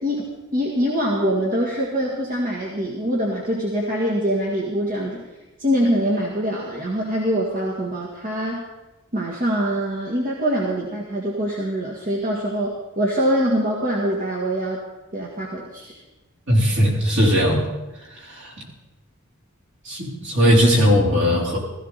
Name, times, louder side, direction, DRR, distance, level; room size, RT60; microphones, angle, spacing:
voice 1, 0.0-5.3 5.6-8.7 9.1-14.8 15.1-16.0, equal, 45° right, -3 dB, 2.0 m, -24 dB
voice 2, 16.5-17.6 19.9-21.6, equal, 60° right, -3 dB, 4.0 m, -18 dB
16.5 x 15.0 x 4.2 m, 1.1 s
head